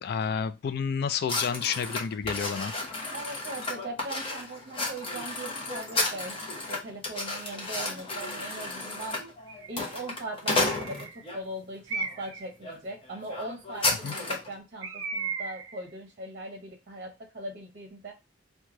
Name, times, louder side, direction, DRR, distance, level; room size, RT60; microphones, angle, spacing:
voice 1, 0.0-2.7 13.9-14.2, left 6 dB, 55° left, 0.3 m, -30 dB
sound 1, 1.3-11.4 12.0-12.2 12.6-12.8 13.0-14.5, left 2 dB, 30° left, 0.8 m, -33 dB
voice 2, 3.1-9.2 9.7-18.1, right 2 dB, 40° right, 0.7 m, -40 dB
Bird, 9.5-9.9 10.7-11.2 11.9-12.5 14.8-15.8, right 4 dB, 90° right, 0.5 m, -35 dB
3.1 x 2.2 x 3.7 m
head